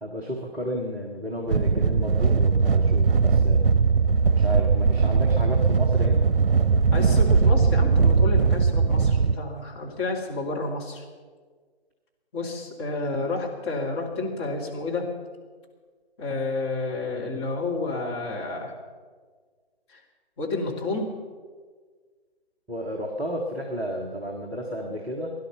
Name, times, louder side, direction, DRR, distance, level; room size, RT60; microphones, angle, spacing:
voice 1, 0.0-3.7 4.3-6.3 22.7-25.3, equal, 5° right, -6 dB, 0.6 m, -32 dB
sound 1, 1.5-9.4, right 5 dB, 60° right, 0.8 m, -20 dB
voice 2, 6.9-11.0 12.3-15.1 16.2-18.7 19.9-20.0 20.4-21.1, left 3 dB, 25° left, -2 dB, 2.6 m, -30 dB
17.0 x 11.5 x 6.8 m, 1.5 s
figure-of-eight pair, 140°, 32 cm